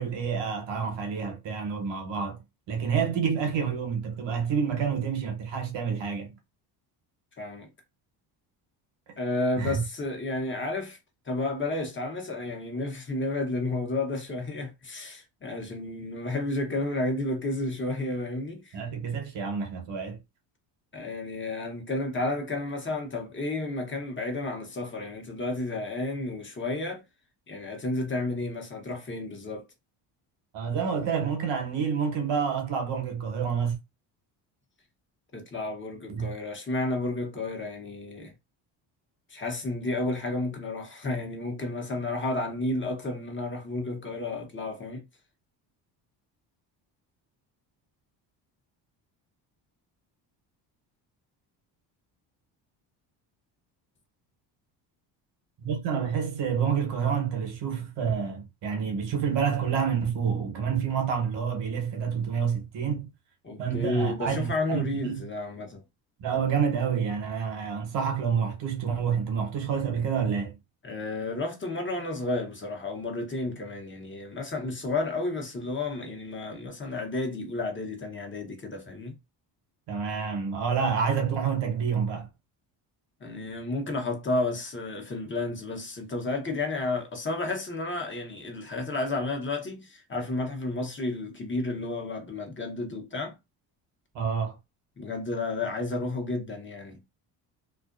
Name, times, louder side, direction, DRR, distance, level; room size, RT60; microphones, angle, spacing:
voice 1, 0.0-2.4 2.7-6.3 9.6-9.8 18.7-20.2 30.5-33.8 36.1-36.3 55.6-63.1 63.6-65.2 66.2-70.6 79.9-82.3 94.1-94.6, right 6 dB, 60° right, 1.1 m, -28 dB
voice 2, 7.4-7.7 9.2-11.0 11.2-18.8 20.9-27.0 27.5-29.7 35.3-38.3 39.3-45.0 63.4-65.8 70.8-79.2 83.2-93.3 95.0-97.0, left 2 dB, 25° left, 1.0 m, -32 dB
2.5 x 2.1 x 2.5 m
supercardioid pair, 75°, 48 cm